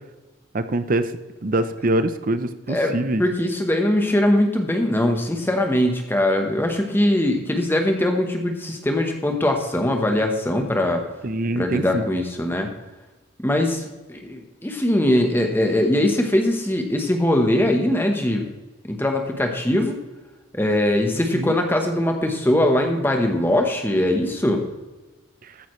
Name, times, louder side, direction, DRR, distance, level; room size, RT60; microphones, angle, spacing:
voice 1, 0.5-1.1 1.4-3.2 11.2-12.0 21.1-21.5, right 1 dB, 40° right, 11 dB, 0.6 m, -24 dB
voice 2, 3.2-11.0 11.6-12.7 13.4-13.8 14.1-18.5 18.9-20.0 20.5-24.6, left 1 dB, 10° left, 4 dB, 1.0 m, -21 dB
14.0 x 9.1 x 3.1 m, 1.2 s
head